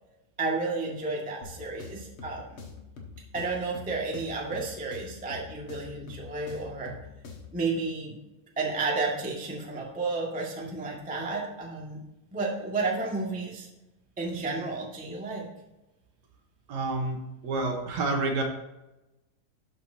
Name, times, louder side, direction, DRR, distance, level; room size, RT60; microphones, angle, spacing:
voice 1, 0.4-2.6 3.3-6.9 7.5-8.2 8.6-12.0 12.3-13.7 14.2-15.5, right 3 dB, 5° right, -3 dB, 0.7 m, -32 dB
sound 1, 1.4-7.6, left 5 dB, 50° left, 1.8 m, -45 dB
voice 2, 16.7-18.4, right 3 dB, 65° right, 2 dB, 2.2 m, -29 dB
12.5 x 7.7 x 2.8 m, 0.97 s
omnidirectional pair, 4.0 m